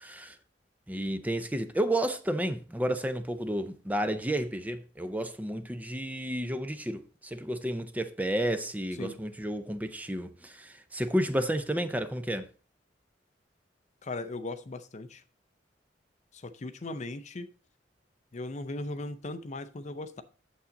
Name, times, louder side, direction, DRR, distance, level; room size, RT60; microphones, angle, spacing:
voice 1, 0.0-0.4 0.9-12.5, right 1 dB, 10° right, 0.6 m, -31 dB
voice 2, 14.0-15.2 16.3-17.5 18.3-20.2, left 2 dB, 40° left, 0.6 m, -38 dB
8.5 x 7.1 x 3.8 m
head